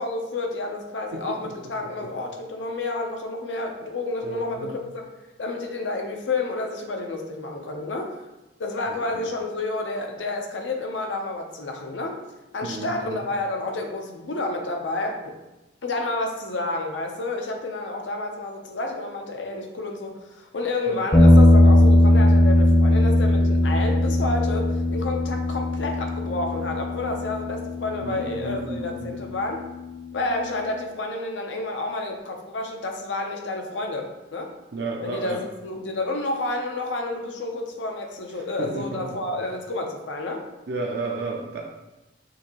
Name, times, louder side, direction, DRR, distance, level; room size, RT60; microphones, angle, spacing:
voice 1, 0.0-5.1 5.4-8.1 8.6-12.2 12.5-15.3 15.8-29.6 30.1-34.5 35.0-40.4, left 2 dB, 85° left, 3 dB, 0.7 m, -30 dB
voice 2, 4.2-4.7 8.9-9.2 12.6-13.2 20.9-21.0 28.0-29.2 34.7-35.4 38.6-39.0 40.7-41.6, right 3 dB, 65° right, -1 dB, 0.5 m, -32 dB
sound 1, 21.1-29.5, left 1 dB, 25° left, 0.6 m, -19 dB
6.3 x 2.7 x 2.9 m, 1.0 s
head